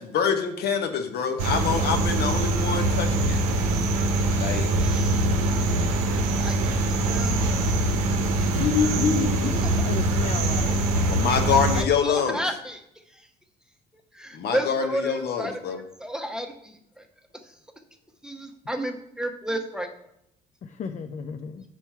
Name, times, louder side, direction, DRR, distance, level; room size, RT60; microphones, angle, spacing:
voice 1, 0.0-3.4 4.4-4.7 8.5-9.7 11.1-12.4 14.3-15.8, left 6 dB, 50° left, 6 dB, 0.9 m, -25 dB
sound 1, 1.4-11.8, right 2 dB, 75° right, 0.8 m, -23 dB
voice 2, 4.8-5.7 6.4-7.6 9.8-9.9 11.7-12.8 14.2-16.5 18.2-19.9, right 1 dB, 5° right, 5 dB, 1.0 m, -32 dB
voice 3, 9.8-11.1 20.8-21.6, left 5 dB, 35° left, 7 dB, 0.5 m, -35 dB
4.4 x 4.4 x 5.6 m, 0.76 s
hypercardioid pair, 55°, 21 cm